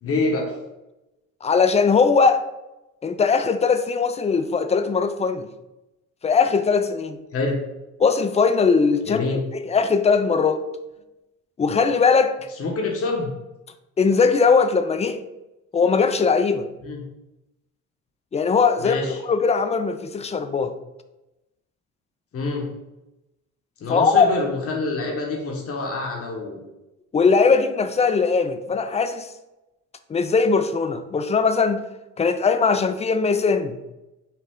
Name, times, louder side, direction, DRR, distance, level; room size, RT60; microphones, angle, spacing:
voice 1, 0.0-0.5 7.3-7.6 9.0-9.4 12.6-13.3 16.8-17.0 18.8-19.2 22.3-22.7 23.8-26.6, left 3 dB, 50° left, 1.0 m, -26 dB
voice 2, 1.4-2.4 3.0-5.5 6.2-7.2 8.0-10.6 11.6-12.4 14.0-15.2 15.7-16.7 18.3-20.7 23.9-24.3 27.1-29.3 30.1-31.8 32.2-33.8, left 5 dB, 20° left, 0.4 m, -20 dB
5.6 x 2.4 x 3.5 m
cardioid pair, 90°, 30 cm